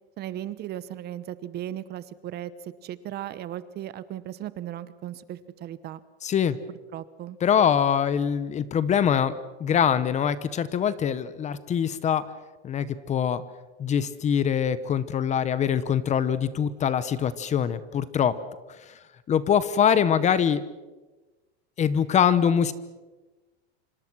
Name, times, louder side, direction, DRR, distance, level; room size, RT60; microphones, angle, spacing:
voice 1, 0.2-6.0 6.9-7.4, right 12 dB, 30° right, 16 dB, 0.9 m, -36 dB
voice 2, 6.2-6.6 7.4-9.3 9.6-12.2 12.6-13.4 13.8-18.4 18.8-18.9 19.3-20.6 21.8-22.7, left 8 dB, 20° left, 15 dB, 0.9 m, -23 dB
27.0 x 26.0 x 6.2 m, 1.2 s
supercardioid pair, 150°, 32 cm